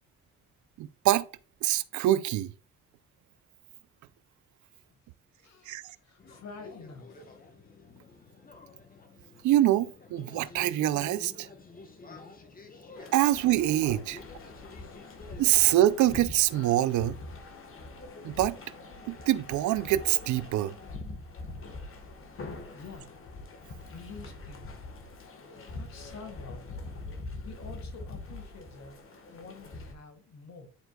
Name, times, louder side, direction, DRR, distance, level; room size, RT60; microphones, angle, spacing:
voice 1, 0.8-1.3 1.6-2.5 5.7-5.8 9.4-11.5 13.1-14.2 15.4-17.2 18.2-18.6 19.1-20.7, right 14 dB, 75° right, 0.5 m, -25 dB
voice 2, 5.4-7.5 12.0-12.2 12.6-12.7 14.9-15.1 22.7-23.1 23.9-24.9 25.7-26.8 27.4-29.0 29.3-30.7, left 4 dB, 60° left, 1.7 m, -48 dB
sound 1, 6.2-15.4, left 3 dB, 30° left, 1.2 m, -50 dB
sound 2, 12.9-29.9, left 2 dB, 45° left, 1.4 m, -43 dB
10.0 x 4.5 x 2.3 m
cardioid pair, 90°, 30 cm